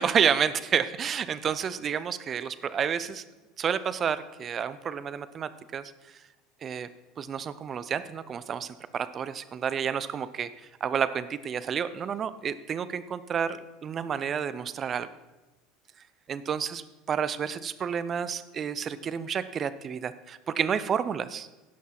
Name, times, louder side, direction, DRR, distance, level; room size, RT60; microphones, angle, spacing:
voice 1, 0.0-3.2 3.6-5.8 6.6-6.9 7.2-10.5 10.8-15.1 16.3-21.5, right 7 dB, 35° right, 15 dB, 0.6 m, -30 dB
16.5 x 6.1 x 4.3 m, 1.1 s
hypercardioid pair, 85°, 0 cm